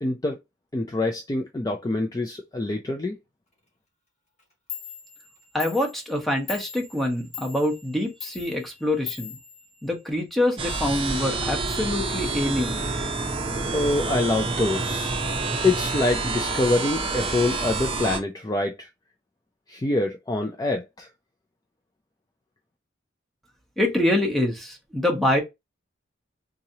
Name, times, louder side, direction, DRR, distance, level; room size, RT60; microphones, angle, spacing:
voice 1, 0.0-0.4 0.7-3.2 13.7-15.1 15.6-18.9 19.7-21.1, left 2 dB, 20° left, 0.4 m, -25 dB
Clock, 4.4-4.5 4.7-10.3, left 8 dB, 35° left, 1.5 m, -41 dB
voice 2, 5.5-9.4 9.8-12.9 23.8-25.4, left 1 dB, ahead, 1.0 m, -25 dB
sound 1, 10.6-18.2, right 3 dB, 30° right, 0.7 m, -28 dB
3.8 x 3.0 x 2.8 m
head